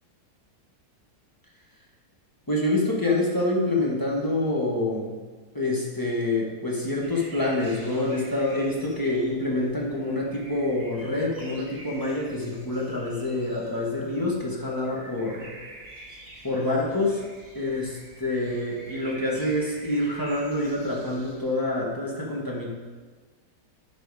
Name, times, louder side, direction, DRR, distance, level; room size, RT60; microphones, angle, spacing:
voice 1, 2.5-5.2 5.5-15.6 16.4-17.2 17.5-22.7, left 2 dB, 15° left, -3 dB, 1.1 m, -27 dB
sound 1, 7.0-21.7, right 1 dB, 25° right, 1.7 m, -46 dB
10.5 x 4.5 x 4.9 m, 1.4 s
omnidirectional pair, 1.9 m